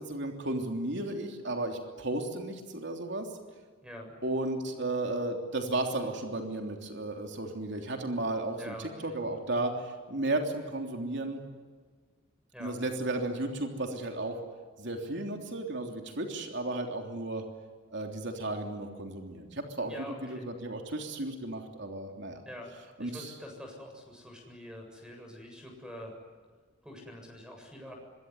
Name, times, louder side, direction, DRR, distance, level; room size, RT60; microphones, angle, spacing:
voice 1, 0.0-3.3 4.2-8.7 9.0-11.4 12.6-14.4 14.8-17.4 17.9-22.4 23.0-23.3, right 2 dB, 60° right, 3 dB, 3.3 m, -34 dB
voice 2, 3.8-4.1 8.6-9.1 12.5-12.8 19.9-20.5 22.4-22.7 23.0-26.1 26.8-27.9, equal, 5° right, 2 dB, 7.7 m, -45 dB
25.5 x 23.5 x 9.8 m, 1.5 s
head